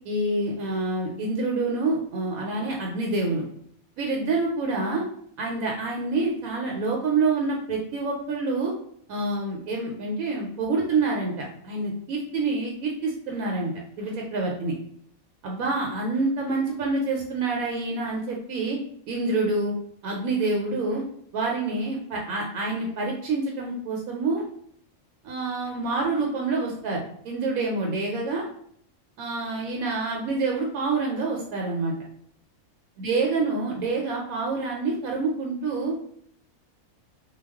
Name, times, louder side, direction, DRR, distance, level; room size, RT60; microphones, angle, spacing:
voice 1, 0.1-3.4 4.0-5.0 5.4-8.7 9.1-13.7 14.0-14.7 15.4-18.8 19.1-19.7 20.0-21.0 21.3-24.4 25.2-28.4 29.2-31.9 33.0-35.9, right 3 dB, 80° right, -1 dB, 1.0 m, -27 dB
2.3 x 2.2 x 3.3 m, 0.65 s
omnidirectional pair, 1.5 m